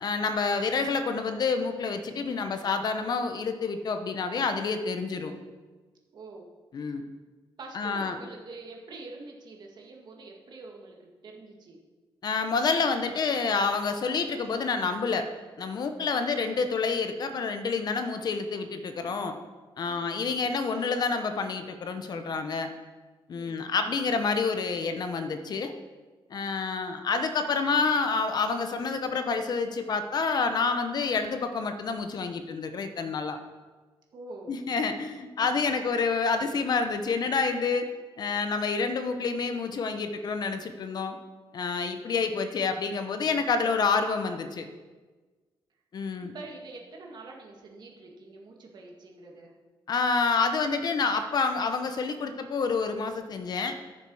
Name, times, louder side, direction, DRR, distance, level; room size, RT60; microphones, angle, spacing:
voice 1, 0.0-5.3 6.7-7.0 7.7-8.2 12.2-15.3 15.6-19.3 19.8-22.7 23.3-25.7 26.3-33.4 34.5-37.9 38.2-41.2 41.5-44.7 45.9-46.3 49.9-53.8, left 4 dB, 45° left, 7 dB, 0.8 m, -28 dB
voice 2, 6.1-6.5 7.6-11.8 16.0-16.2 19.9-20.6 23.3-23.7 34.1-34.6 35.4-35.6 46.3-49.5, right 3 dB, 50° right, 0 dB, 1.9 m, -45 dB
14.0 x 7.0 x 4.8 m, 1.3 s
wide cardioid pair, 170°, 9 cm